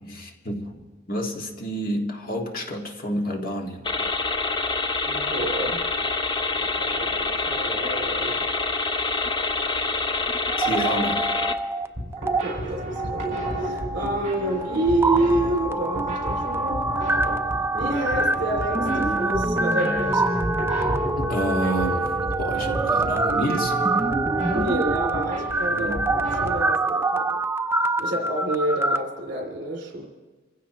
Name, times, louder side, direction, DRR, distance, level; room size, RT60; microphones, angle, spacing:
voice 1, 0.0-0.8 1.1-3.8 4.3-4.4 10.6-11.3 21.2-22.0 22.4-23.7 25.7-26.0, equal, 50° left, 1 dB, 1.8 m, -29 dB
sound 1, 3.8-11.5, left 3 dB, 25° left, 0.7 m, -26 dB
voice 2, 5.1-5.9 6.5-8.4 12.2-16.8 17.2-17.3 17.7-20.4 24.5-27.4 28.0-30.1, right 1 dB, 65° right, -1 dB, 2.5 m, -28 dB
sound 2, 10.5-11.9 12.1-12.4 13.0-29.0, right 2 dB, 15° right, 0.4 m, -25 dB
sound 3, 11.8-26.6, right 1 dB, 40° right, 6.8 m, -32 dB
27.0 x 15.5 x 3.0 m, 1.3 s
head